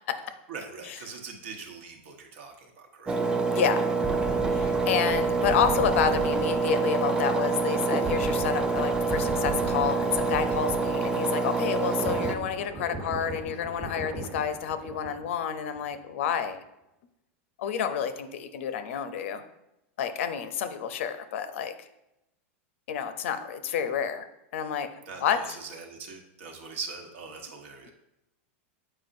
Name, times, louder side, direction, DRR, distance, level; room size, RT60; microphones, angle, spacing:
voice 1, 0.5-3.2 25.1-27.9, right 4 dB, 70° right, 2 dB, 1.2 m, -41 dB
Engine, 3.1-12.4, right 3 dB, 10° right, 0.4 m, -26 dB
voice 2, 3.5-3.8 4.5-16.6 17.6-19.4 20.0-21.7 22.9-24.3 24.5-24.9 25.2-25.6, left 8 dB, 70° left, 10 dB, 0.6 m, -29 dB
sound 1, 3.9-11.4 11.7-15.4 15.7-16.0, right 3 dB, 30° right, 1.2 m, -38 dB
7.6 x 4.9 x 2.6 m, 0.89 s
supercardioid pair, 145°, 7 cm